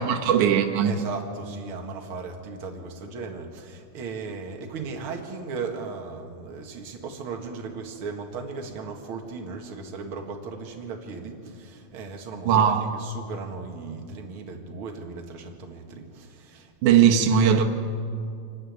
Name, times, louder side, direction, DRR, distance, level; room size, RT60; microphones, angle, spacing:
voice 1, 0.0-1.0 12.4-12.8 16.8-17.6, right 8 dB, 85° right, 5 dB, 2.6 m, -19 dB
voice 2, 0.8-17.2, right 4 dB, 50° right, 2 dB, 2.4 m, -37 dB
25.5 x 12.0 x 9.4 m, 2.4 s
omnidirectional pair, 3.4 m